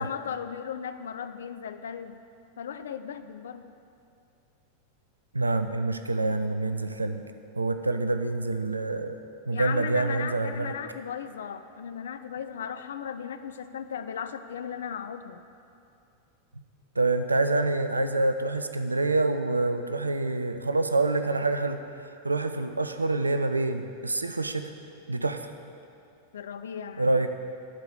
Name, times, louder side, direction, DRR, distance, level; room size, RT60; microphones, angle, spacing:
voice 1, 0.0-2.2 2.6-3.7 9.5-15.4 26.3-27.3, left 8 dB, 65° left, 10 dB, 0.4 m, -36 dB
voice 2, 5.3-7.2 7.6-9.2 9.5-10.7 17.0-24.7 25.1-25.5 27.0-27.3, right 2 dB, 80° right, 9 dB, 0.4 m, -27 dB
12.0 x 4.8 x 8.2 m, 2.5 s
figure-of-eight pair, 90°, 0 cm